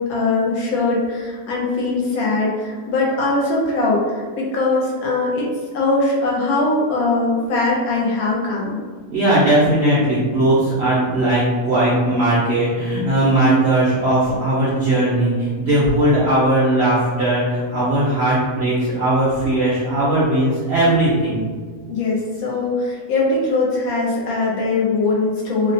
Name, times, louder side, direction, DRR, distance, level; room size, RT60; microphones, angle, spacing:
voice 1, 0.1-5.5 5.7-8.8 21.9-25.7, left 3 dB, 70° left, -4 dB, 1.0 m, -21 dB
voice 2, 9.1-21.4, right 1 dB, 65° right, -8 dB, 0.6 m, -18 dB
2.7 x 2.1 x 2.6 m, 1.5 s
omnidirectional pair, 1.7 m